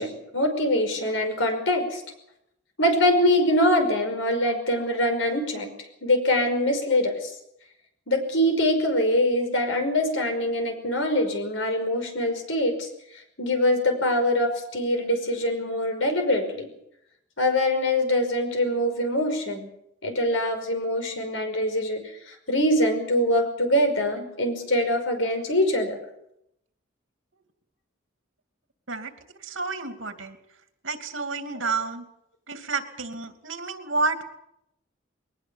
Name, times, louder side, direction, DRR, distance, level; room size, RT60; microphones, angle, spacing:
voice 1, 0.0-2.0 2.8-5.7 6.0-7.3 8.1-12.9 13.4-16.7 17.4-19.7 20.0-22.0 22.3-26.0, left 1 dB, 75° left, 6 dB, 5.5 m, -24 dB
voice 2, 29.4-30.4 30.8-32.0 32.5-34.2, right 4 dB, 85° right, 7 dB, 2.7 m, -30 dB
21.5 x 19.5 x 7.2 m, 0.78 s
head